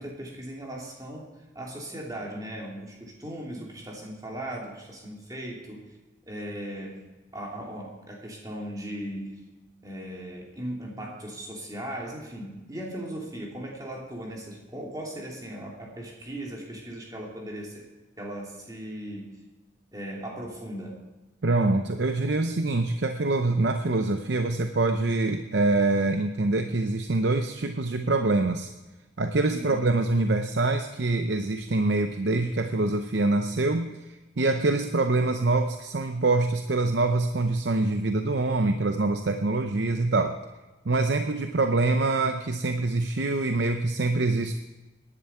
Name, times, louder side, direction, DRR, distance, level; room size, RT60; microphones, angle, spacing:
voice 1, 0.0-5.8 6.3-7.0 7.3-9.4 9.8-17.8 18.2-19.4 19.9-21.0 29.5-29.8, right 1 dB, 20° right, -2 dB, 3.0 m, -38 dB
voice 2, 21.4-28.7 29.2-40.4 40.8-44.5, right 2 dB, 65° right, 7 dB, 0.7 m, -25 dB
18.0 x 11.0 x 4.5 m, 1.1 s
head